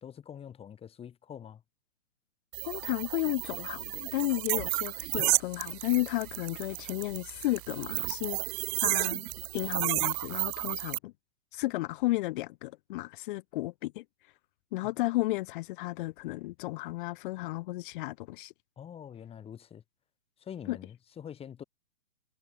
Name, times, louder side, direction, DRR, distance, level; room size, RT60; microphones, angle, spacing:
voice 1, 0.0-1.6 18.8-19.8 20.4-21.6, left 8 dB, 15° left, 7.4 m, -45 dB
sound 1, 2.5-11.0, right 40 dB or more, 25° right, 1.4 m, -32 dB
voice 2, 2.7-8.4 8.8-9.3 9.5-11.1 11.5-14.0 14.7-18.5 20.7-20.8, left 19 dB, 40° left, 6.5 m, -33 dB
hypercardioid pair, 145°, 39 cm